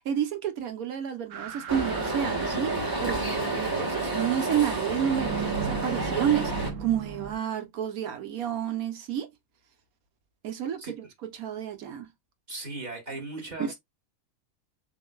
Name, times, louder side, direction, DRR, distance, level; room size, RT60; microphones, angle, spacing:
voice 1, 0.0-9.3 10.4-11.0 11.4-12.1 13.6-13.7, right 9 dB, 85° right, 1.3 m, -30 dB
sound 1, 1.3-3.3 5.0-7.3, right 6 dB, 65° right, 1.1 m, -36 dB
sound 2, 1.7-6.7, right 2 dB, 15° right, 1.3 m, -30 dB
voice 2, 10.8-11.1 12.5-13.7, right 2 dB, 30° right, 1.6 m, -38 dB
6.9 x 2.6 x 2.2 m
omnidirectional pair, 1.5 m